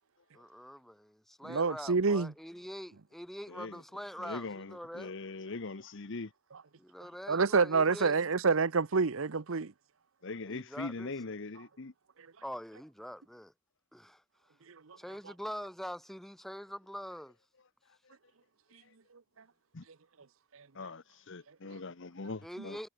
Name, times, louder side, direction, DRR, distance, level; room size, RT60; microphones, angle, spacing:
voice 1, 0.3-5.1 6.8-8.2 10.5-11.1 12.4-13.5 13.9-14.2 15.0-17.4 22.4-22.9, equal, ahead, 2.5 m, -44 dB
voice 2, 1.4-2.3 7.3-9.7 14.7-15.0 20.5-20.7 21.7-21.8, right 4 dB, 70° right, 0.8 m, -28 dB
voice 3, 3.5-3.8 4.2-6.3 10.2-11.9 18.0-18.2 18.8-18.9 19.7-19.8 20.7-22.8, left 3 dB, 60° left, 1.0 m, -41 dB
head